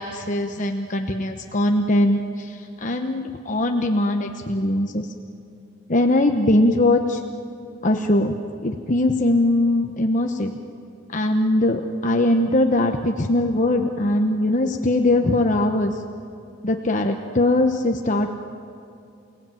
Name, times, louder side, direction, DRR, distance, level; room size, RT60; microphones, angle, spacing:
voice 1, 0.0-5.1 5.9-7.2 7.8-8.4 8.6-10.5 11.1-16.0 16.6-18.3, left 1 dB, 35° left, 4 dB, 1.0 m, -21 dB
28.5 x 18.5 x 9.1 m, 2.6 s
head